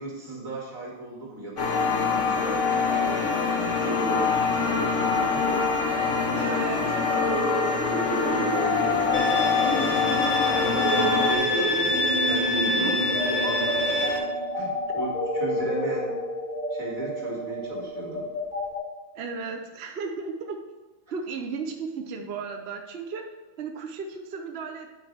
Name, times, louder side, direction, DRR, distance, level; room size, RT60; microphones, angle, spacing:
voice 1, 0.0-5.6 6.3-7.3 8.0-10.0 10.5-14.0 14.5-16.1 16.7-18.3, right 1 dB, 80° right, -3 dB, 2.8 m, -36 dB
sound 1, 1.6-11.3, left 5 dB, 65° left, 1.4 m, -25 dB
voice 2, 6.4-6.9 11.0-11.2 12.8-12.9 19.1-20.6 21.1-23.3 23.6-24.9, right 5 dB, 55° right, 4 dB, 0.9 m, -34 dB
sound 2, 6.9-18.8, equal, 30° left, 2.2 m, -30 dB
Bowed string instrument, 9.1-14.2, left 2 dB, 80° left, 2.1 m, -26 dB
8.9 x 8.6 x 3.4 m, 1.3 s
omnidirectional pair, 1.4 m